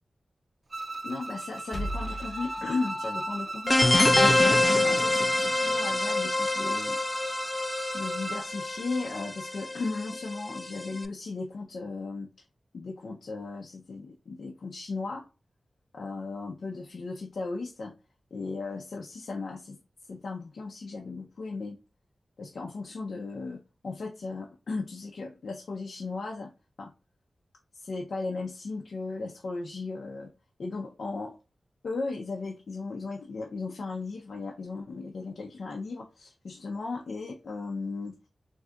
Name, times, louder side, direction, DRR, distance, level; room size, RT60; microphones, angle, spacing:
Bowed string instrument, 0.7-8.5, right 2 dB, 55° right, 0.5 m, -38 dB
voice 1, 1.0-7.0 7.9-12.3 12.7-15.2 15.9-17.9 18.3-19.8 20.1-21.8 22.4-26.5 26.8-26.9 27.8-30.3 30.6-31.4 31.8-38.1, left 3 dB, 80° left, 0.4 m, -36 dB
sound 1, 1.7-3.8, left 1 dB, 45° left, 0.8 m, -36 dB
sound 2, 3.7-11.0, left 2 dB, 20° left, 0.4 m, -26 dB
3.6 x 2.6 x 2.2 m
wide cardioid pair, 80°, 0 cm